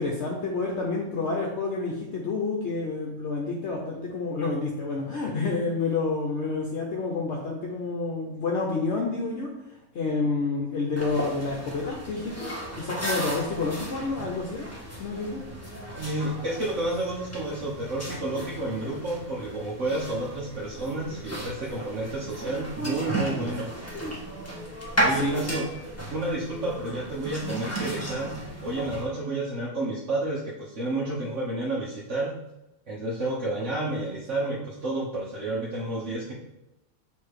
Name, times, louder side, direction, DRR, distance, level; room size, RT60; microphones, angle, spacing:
voice 1, 0.0-9.5 9.9-14.7 15.0-15.4 25.1-25.4, left 3 dB, 55° left, -1 dB, 1.1 m, -29 dB
sound 1, 11.0-29.0, right 1 dB, 10° left, 1.4 m, -34 dB
voice 2, 15.9-23.7 25.0-25.7 26.1-32.4 32.9-36.3, right 2 dB, 60° right, -6 dB, 1.4 m, -30 dB
6.9 x 3.4 x 4.7 m, 0.92 s
omnidirectional pair, 1.5 m